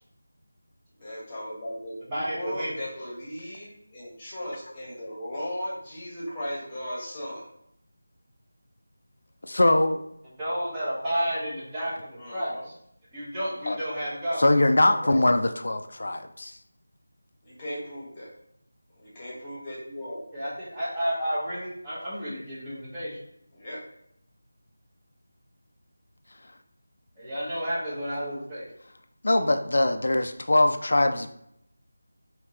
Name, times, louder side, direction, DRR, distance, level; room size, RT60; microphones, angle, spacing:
voice 1, 1.0-7.4 12.2-12.7 14.8-15.2 17.4-18.3 19.0-20.2 23.5-23.8, equal, 20° left, -6 dB, 1.3 m, -37 dB
voice 2, 2.1-2.8 10.4-12.7 13.1-14.5 20.3-23.2 27.2-28.6, equal, 15° right, -10 dB, 1.0 m, -31 dB
voice 3, 9.5-10.0 13.7-13.8 14.4-16.6 29.2-31.3, left 2 dB, 65° left, 7 dB, 0.3 m, -22 dB
3.5 x 2.7 x 3.0 m, 0.74 s
figure-of-eight pair, 170°, 0 cm